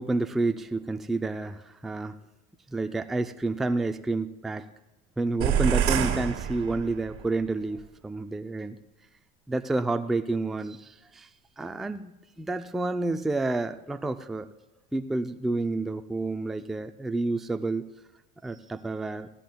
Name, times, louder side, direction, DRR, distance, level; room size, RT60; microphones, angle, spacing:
voice 1, 0.0-2.2 2.7-4.7 5.2-8.8 9.5-11.3 11.6-14.5 14.9-17.8 18.4-19.3, right 2 dB, ahead, 8 dB, 0.3 m, -29 dB
sound 1, 5.4-7.3, right 9 dB, 50° right, 1.6 m, -26 dB
18.5 x 15.5 x 2.2 m, 1.0 s
cardioid pair, 125°, 30 cm